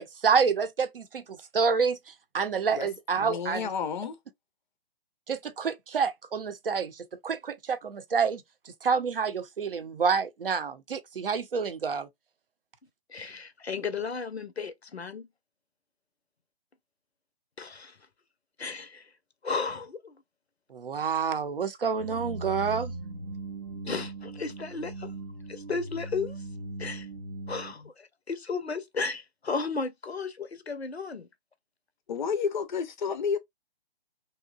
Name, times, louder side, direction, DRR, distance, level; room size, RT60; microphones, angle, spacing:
voice 1, 0.0-3.7 5.3-8.4 8.8-12.1 20.7-22.9, right 6 dB, 65° right, 0.7 m, -28 dB
voice 2, 3.2-4.2 32.1-33.4, left 6 dB, 50° left, 0.5 m, -30 dB
voice 3, 13.1-15.3 17.6-18.0 18.6-19.1 19.4-20.2 23.8-25.1 25.5-26.4 26.8-27.1 27.5-31.3, left 4 dB, 90° left, 0.6 m, -34 dB
sound 1, 22.0-27.7, right 2 dB, 25° right, 0.4 m, -39 dB
2.8 x 2.2 x 2.3 m
figure-of-eight pair, 135°, 31 cm